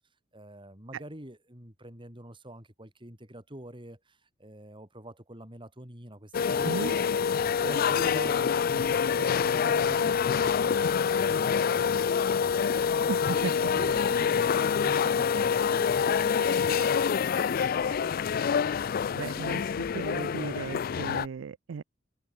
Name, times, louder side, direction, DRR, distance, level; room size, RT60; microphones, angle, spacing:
voice 1, 0.3-7.0 7.4-12.6 12.9-18.1, right 1 dB, 25° right, 6.5 m, -46 dB
sound 1, 6.3-21.3, left 6 dB, 50° left, 0.4 m, -26 dB
voice 2, 13.1-13.5 19.1-19.6 19.9-21.8, right 5 dB, 75° right, 0.4 m, -35 dB
head